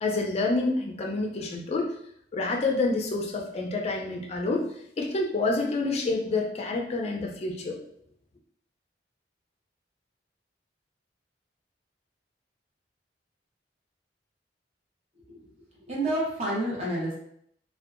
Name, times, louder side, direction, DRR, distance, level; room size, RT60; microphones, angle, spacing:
voice 1, 0.0-1.9 2.3-4.7 5.0-7.8, left 3 dB, 35° left, 1 dB, 0.4 m, -28 dB
voice 2, 15.9-17.1, right 1 dB, 35° right, -5 dB, 0.8 m, -29 dB
2.6 x 2.2 x 2.4 m, 0.69 s
head